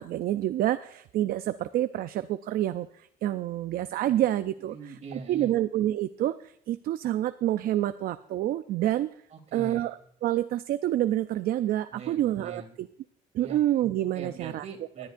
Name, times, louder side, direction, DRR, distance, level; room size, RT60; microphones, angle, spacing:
voice 1, 0.0-4.7 5.3-9.1 9.5-12.9 13.3-14.6, right 13 dB, 60° right, 12 dB, 0.5 m, -28 dB
voice 2, 4.7-5.6 9.3-9.9 11.9-12.8 13.4-13.6 14.1-15.1, right 4 dB, 40° right, 4 dB, 2.8 m, -42 dB
19.5 x 10.5 x 2.6 m, 0.67 s
cardioid pair, 110°, 17 cm